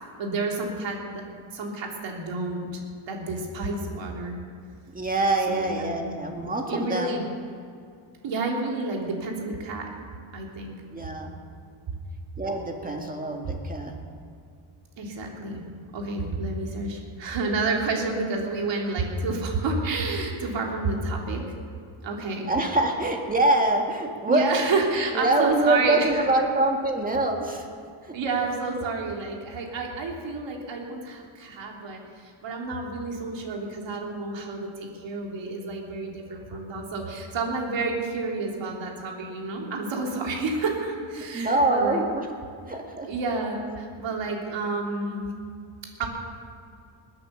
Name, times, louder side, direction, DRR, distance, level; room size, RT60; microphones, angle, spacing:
voice 1, 0.2-1.2 1.5-2.7 3.0-4.3 5.5-6.0 6.7-7.3 8.2-9.9 10.3-10.8 15.0-15.6 15.9-21.4 22.0-22.5 24.3-26.2 28.1-42.0 42.6-42.7 43.1-45.3 46.0-46.1, right 3 dB, 60° right, 0 dB, 3.1 m, -29 dB
voice 2, 4.9-7.2 10.9-11.3 12.4-14.0 22.5-24.5 25.1-27.7 28.0-28.1 41.2-42.3 42.7-43.1, right 2 dB, 15° right, 2 dB, 1.9 m, -25 dB
20.5 x 8.7 x 6.7 m, 2.3 s
cardioid pair, 135°, 50 cm